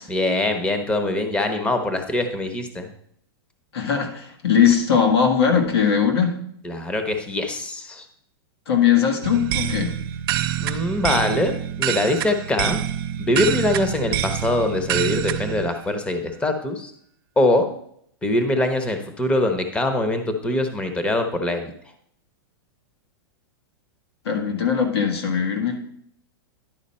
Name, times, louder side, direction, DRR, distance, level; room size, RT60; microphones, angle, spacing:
voice 1, 0.1-2.9 6.6-8.1 10.6-12.8 13.2-16.9 17.4-17.7 18.2-21.7, left 1 dB, 10° left, 6 dB, 0.8 m, -23 dB
voice 2, 3.7-6.4 8.7-9.9 24.2-25.7, left 7 dB, 85° left, 3 dB, 1.7 m, -20 dB
sound 1, 9.2-15.7, right 12 dB, 60° right, 0.5 m, -26 dB
10.5 x 4.8 x 4.3 m, 0.68 s
hypercardioid pair, 135°, 13 cm